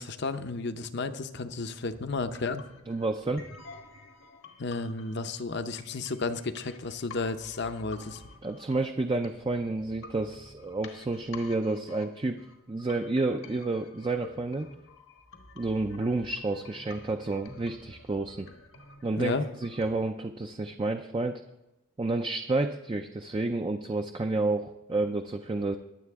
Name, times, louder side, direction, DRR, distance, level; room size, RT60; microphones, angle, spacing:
voice 1, 0.0-2.6 4.6-8.2 19.2-19.5, left 3 dB, 55° left, 10 dB, 0.7 m, -32 dB
sound 1, 1.9-19.9, left 3 dB, 75° left, 1.4 m, -50 dB
voice 2, 2.9-3.5 8.4-14.7 15.6-18.5 19.0-19.3 19.6-21.4 22.0-25.8, right 2 dB, 25° right, 5 dB, 0.4 m, -30 dB
22.0 x 7.6 x 3.5 m, 0.94 s
head